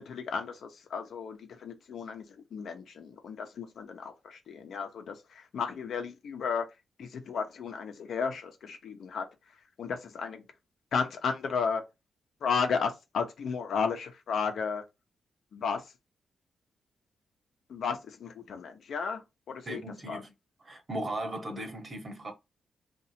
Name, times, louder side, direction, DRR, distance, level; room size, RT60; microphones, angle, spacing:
voice 1, 0.0-6.7 7.0-9.3 9.8-10.4 10.9-11.8 12.4-14.8 15.5-15.8 17.7-19.8 20.1-20.2, left 5 dB, 75° left, 0.8 m, -33 dB
voice 2, 19.6-20.3 20.6-22.3, right 1 dB, 35° right, 1.2 m, -37 dB
2.8 x 2.6 x 4.2 m
cardioid pair, 80°, 0 cm